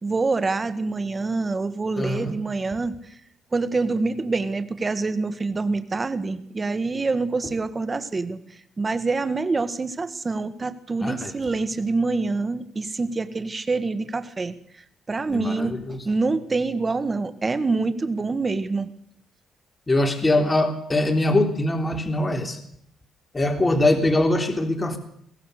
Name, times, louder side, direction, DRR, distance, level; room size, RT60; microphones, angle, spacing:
voice 1, 0.0-2.9 3.5-8.4 8.8-14.6 15.1-15.7 16.0-18.9, right 3 dB, 30° right, 12 dB, 1.8 m, -26 dB
voice 2, 2.0-2.3 11.0-11.3 15.3-16.0 19.9-22.6 23.3-25.0, left 1 dB, 20° left, 5 dB, 3.5 m, -22 dB
22.5 x 17.0 x 6.8 m, 0.68 s
cardioid pair, 90°, 0 cm